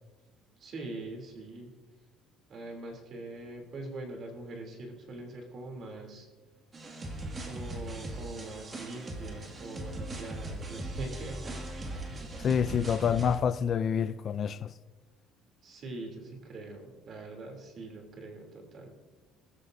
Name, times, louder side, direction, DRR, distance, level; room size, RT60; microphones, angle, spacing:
voice 1, 0.6-1.7 2.5-6.3 7.4-11.6 15.6-18.9, right 2 dB, 35° right, 3.0 m, -43 dB
sound 1, 6.7-13.4, right 1 dB, 20° right, 2.0 m, -39 dB
voice 2, 12.4-14.7, left 7 dB, 35° left, 0.3 m, -27 dB
21.5 x 13.5 x 2.6 m
cardioid pair, 165°, 0 cm